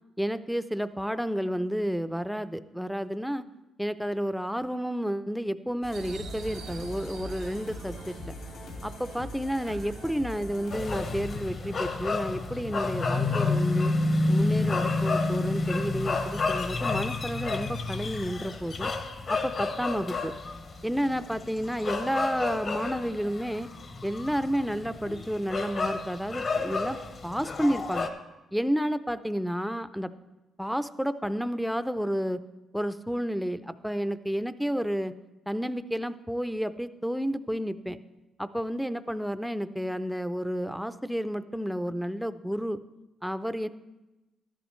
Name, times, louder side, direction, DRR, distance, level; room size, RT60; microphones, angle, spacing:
voice 1, 0.2-3.4 3.8-8.3 8.8-13.9 14.3-18.9 19.3-20.3 20.8-23.7 24.0-27.0 27.2-28.1 28.5-30.1 30.6-32.4 32.7-35.1 35.5-38.0 38.4-42.8 43.2-43.7, equal, ahead, 12 dB, 0.4 m, -31 dB
sound 1, 5.8-11.4, left 2 dB, 70° left, 2.0 m, -42 dB
sound 2, 5.9-15.8, right 8 dB, 70° right, 0.6 m, -48 dB
sound 3, 10.7-28.1, left 3 dB, 45° left, 0.9 m, -30 dB
13.0 x 11.0 x 3.1 m, 1.0 s
cardioid pair, 90°, 0 cm